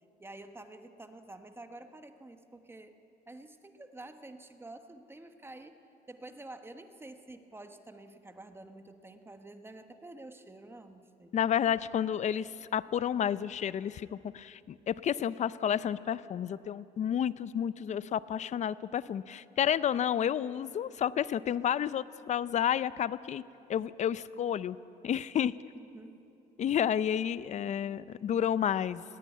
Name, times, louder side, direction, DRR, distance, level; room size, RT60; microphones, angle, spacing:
voice 1, 0.2-2.9 3.3-5.8 6.1-11.4 25.7-26.2, right 2 dB, 15° right, 8 dB, 1.2 m, -49 dB
voice 2, 11.3-23.4 23.7-24.8 25.0-25.5 26.6-29.0, left 9 dB, 45° left, 17 dB, 0.6 m, -30 dB
19.5 x 16.0 x 9.5 m, 2.8 s
cardioid pair, 110°, 17 cm